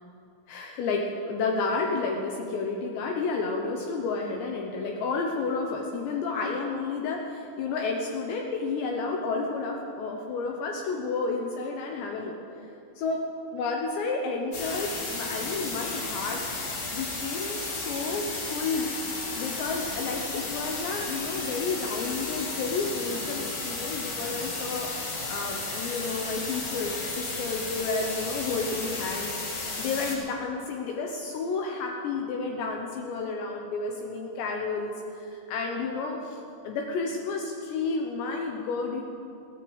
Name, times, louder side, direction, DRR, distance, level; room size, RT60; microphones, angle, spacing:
voice 1, 0.5-12.7 13.0-13.2 13.5-16.4 16.9-18.9 19.4-24.9 25.3-36.4 36.6-39.2, left 4 dB, 75° left, 1 dB, 2.8 m, -31 dB
sound 1, 14.5-30.2, left 3 dB, 45° left, 3.9 m, -34 dB
17.0 x 9.7 x 7.9 m, 2.7 s
omnidirectional pair, 5.7 m